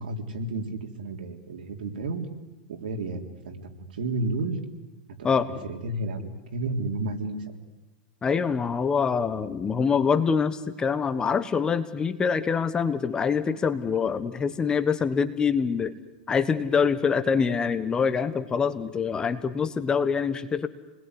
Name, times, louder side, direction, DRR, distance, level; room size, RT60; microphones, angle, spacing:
voice 1, 0.0-2.2 2.7-4.6 5.3-7.4, right 2 dB, 80° right, 4 dB, 3.7 m, -32 dB
voice 2, 8.2-15.9 16.3-20.7, left 6 dB, 15° left, 12 dB, 1.2 m, -25 dB
28.5 x 21.0 x 9.8 m, 1.1 s
supercardioid pair, 145°, 5 cm